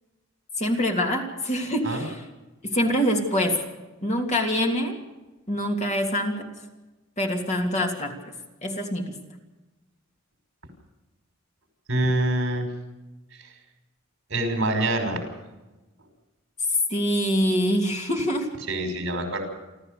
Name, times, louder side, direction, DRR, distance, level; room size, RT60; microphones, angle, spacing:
voice 1, 0.6-2.2 2.6-3.6 4.0-5.0 5.5-6.5 7.2-8.2 8.6-9.2 16.9-18.5, equal, 35° left, 1 dB, 2.9 m, -25 dB
voice 2, 11.9-12.7 13.4-13.5 14.3-15.2 18.7-19.4, right 1 dB, 65° right, 5 dB, 5.5 m, -25 dB
29.0 x 13.5 x 6.7 m, 1.1 s
head